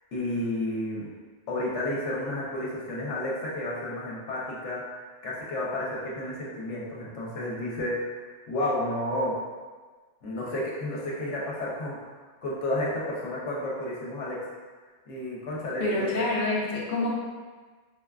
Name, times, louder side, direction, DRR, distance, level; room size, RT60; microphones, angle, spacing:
voice 1, 0.1-1.1 1.5-8.1 8.5-9.4 10.2-12.0 12.4-14.4 15.1-16.2, left 1 dB, 75° left, -5 dB, 1.1 m, -31 dB
voice 2, 15.8-17.1, left 2 dB, 55° left, -5 dB, 0.7 m, -27 dB
4.3 x 2.2 x 2.3 m, 1.4 s
omnidirectional pair, 1.3 m